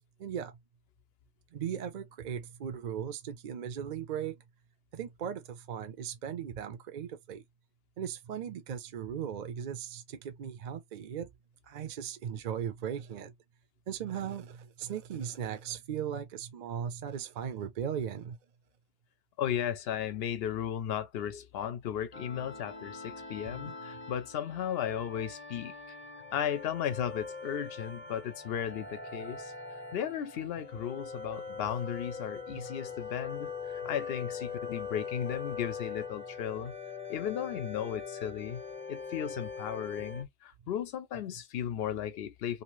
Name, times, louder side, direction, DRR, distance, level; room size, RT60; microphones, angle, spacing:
voice 1, 0.2-0.6 1.5-4.4 4.9-7.4 8.0-11.3 11.7-13.3 13.9-18.4 23.5-23.6 32.5-32.7, right 8 dB, 55° right, 0.6 m, -38 dB
voice 2, 19.4-25.7 26.3-29.5 29.9-36.7 37.1-38.6 38.9-42.6, left 9 dB, 75° left, 0.8 m, -35 dB
sound 1, 22.1-40.2, left 5 dB, 15° left, 0.7 m, -42 dB
2.7 x 2.5 x 3.0 m
omnidirectional pair, 1.1 m